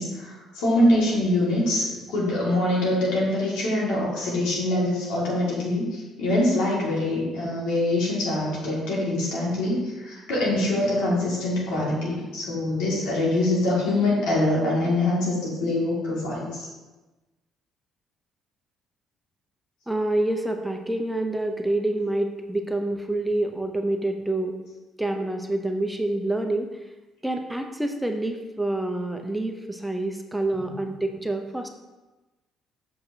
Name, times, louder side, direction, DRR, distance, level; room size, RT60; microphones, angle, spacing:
voice 1, 0.0-16.7, left 1 dB, 80° left, -5 dB, 2.1 m, -24 dB
voice 2, 19.9-24.6 25.0-26.8 27.2-31.7, right 1 dB, 5° right, 4 dB, 0.6 m, -27 dB
6.5 x 5.6 x 2.8 m, 1.1 s
supercardioid pair, 60°, 0 cm